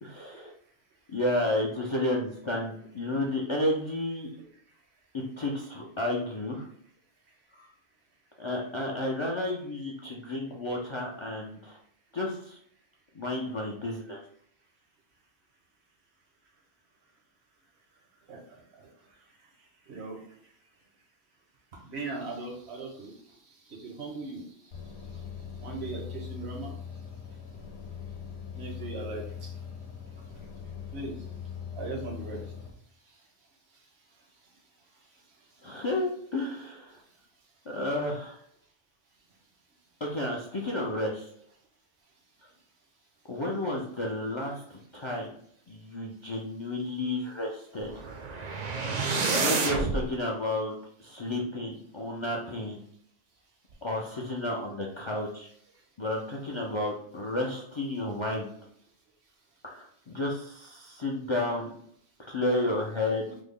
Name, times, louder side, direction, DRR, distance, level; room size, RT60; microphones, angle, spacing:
voice 1, 0.0-0.5 1.1-4.3 5.1-6.7 7.6-7.7 8.4-11.8 12.1-12.6 13.2-14.2 35.6-37.0 37.7-38.4 40.0-41.3 43.3-45.3 45.7-47.9 49.3-50.7 51.0-52.8 53.8-55.5 56.0-58.5 59.6-61.7 62.3-63.3, left 1 dB, 50° left, -2 dB, 0.3 m, -31 dB
voice 2, 21.8-23.1 23.8-24.4 25.6-26.7 28.6-29.2 30.9-31.1 31.8-32.4, right 3 dB, 80° right, -1 dB, 1.1 m, -38 dB
sound 1, 24.7-32.7, left 7 dB, 90° left, 0.9 m, -41 dB
sound 2, 47.8-50.0, right 4 dB, 55° right, 0.5 m, -29 dB
3.5 x 2.0 x 3.5 m, 0.66 s
omnidirectional pair, 1.1 m